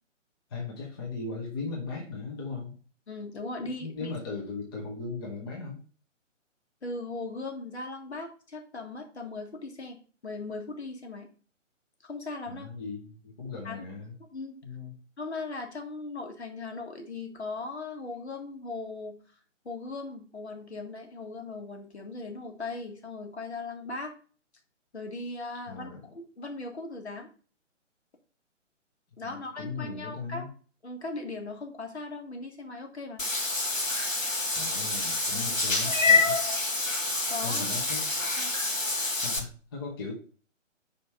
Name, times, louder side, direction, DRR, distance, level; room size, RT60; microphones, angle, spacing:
voice 1, 0.5-2.8 3.8-5.8 12.5-14.1 14.6-14.9 25.7-26.0 29.2-30.5 34.5-36.4 37.4-38.1 39.1-40.1, left 4 dB, 20° left, -1 dB, 1.0 m, -38 dB
voice 2, 3.1-4.1 6.8-11.3 12.1-12.7 13.6-13.8 14.3-14.5 15.2-19.2 19.7-24.1 24.9-27.3 29.2-30.5 30.8-33.3 35.3-35.5 37.3-37.7 38.4-38.5, left 3 dB, 60° left, 3 dB, 1.8 m, -38 dB
Meow / Water / Bathtub (filling or washing), 33.2-39.4, left 3 dB, 90° left, 1.6 m, -27 dB
5.1 x 4.2 x 5.5 m, 0.40 s
figure-of-eight pair, 140°, 38 cm